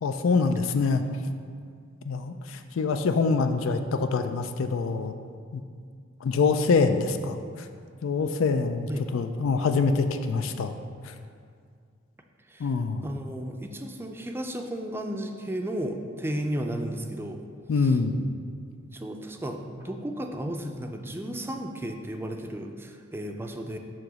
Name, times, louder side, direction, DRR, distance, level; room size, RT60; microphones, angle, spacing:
voice 1, 0.0-1.0 2.0-5.1 5.5-5.6 6.2-7.7 8.0-10.8 11.0-11.1 12.6-13.1 17.7-18.3, left 4 dB, 85° left, 8 dB, 0.4 m, -25 dB
voice 2, 13.0-17.5 17.8-18.0 18.9-23.8, right 1 dB, 10° right, 4 dB, 0.4 m, -34 dB
7.5 x 3.0 x 6.1 m, 2.2 s
head